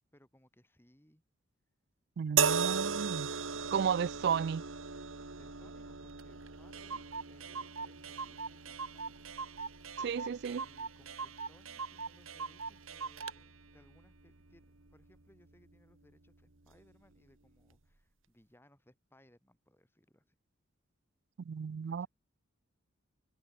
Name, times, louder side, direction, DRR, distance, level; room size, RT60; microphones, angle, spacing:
voice 1, 0.1-1.2 5.3-9.3 10.6-20.4 21.8-22.1, equal, 10° left, 7.6 m, -66 dB
voice 2, 2.2-3.3 3.7-4.6 10.0-10.6 21.5-22.1, right 7 dB, 55° right, 0.3 m, -33 dB
sound 1, 2.4-15.7 16.6-16.8, right 6 dB, 70° right, 1.7 m, -38 dB
Clock, 6.2-6.3 6.5-6.6 6.7-13.4, right 5 dB, 85° right, 3.3 m, -42 dB
head